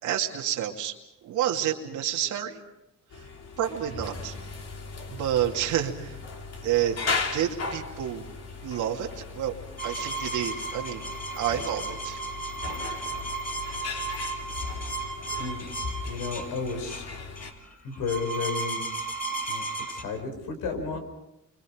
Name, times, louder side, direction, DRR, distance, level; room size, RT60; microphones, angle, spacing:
voice 1, 0.0-0.9 1.2-2.6 3.6-4.4 5.1-6.2 6.6-7.0 7.3-8.2 8.6-9.6 9.8-11.1 11.4-12.2, right 10 dB, 90° right, 1 dB, 2.5 m, -29 dB
sound 1, 3.1-17.5, left 4 dB, 55° left, 3.3 m, -37 dB
sound 2, 9.8-20.0, right 3 dB, 30° left, 5.7 m, -35 dB
voice 2, 16.0-17.1 17.8-18.8 19.5-21.0, left 4 dB, 85° left, 6 dB, 5.2 m, -32 dB
29.0 x 25.5 x 5.1 m, 0.84 s
cardioid pair, 90°, 30 cm